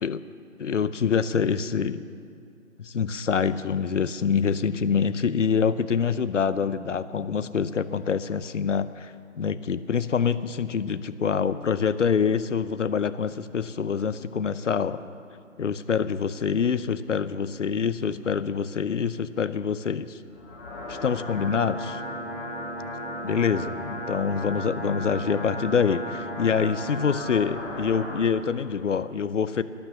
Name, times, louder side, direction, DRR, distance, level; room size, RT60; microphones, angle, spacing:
voice 1, 0.6-2.1 2.8-15.0 15.6-20.2 20.9-22.0 23.2-29.6, left 6 dB, 65° left, 14 dB, 0.7 m, -26 dB
sound 1, 20.3-28.3, equal, 10° left, 1.2 m, -35 dB
12.5 x 12.5 x 6.8 m, 2.4 s
figure-of-eight pair, 155°, 40 cm